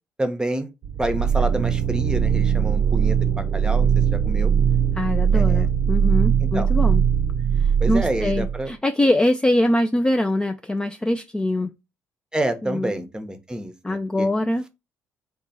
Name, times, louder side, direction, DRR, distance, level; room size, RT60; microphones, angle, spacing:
voice 1, 0.2-0.7 1.0-4.5 5.3-5.7 6.4-6.7 7.8-8.7 12.3-14.3, right 1 dB, 10° right, 0.8 m, -28 dB
sound 1, 0.8-8.7, right 7 dB, 55° right, 0.6 m, -20 dB
voice 2, 4.9-7.1 7.9-11.7 12.6-12.9 13.8-14.6, left 1 dB, 10° left, 0.3 m, -23 dB
3.2 x 2.2 x 4.1 m
hypercardioid pair, 50°, 7 cm